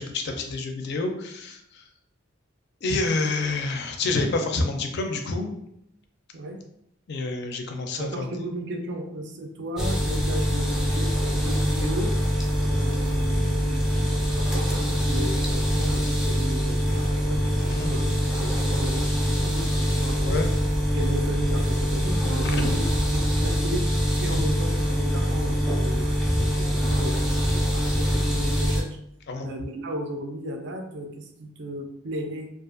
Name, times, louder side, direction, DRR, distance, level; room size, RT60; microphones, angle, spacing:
voice 1, 0.0-1.6 2.8-5.5 7.1-8.2 17.7-17.9 20.3-20.5 24.4-24.5 29.3-29.5, left 3 dB, 55° left, 5 dB, 0.4 m, -28 dB
voice 2, 8.0-12.2 12.6-20.4 20.9-23.9 24.2-29.0 29.4-32.5, right 1 dB, 60° right, 4 dB, 0.4 m, -35 dB
sound 1, 9.8-28.8, equal, ahead, 0.4 m, -24 dB
2.4 x 2.4 x 2.4 m, 0.76 s
head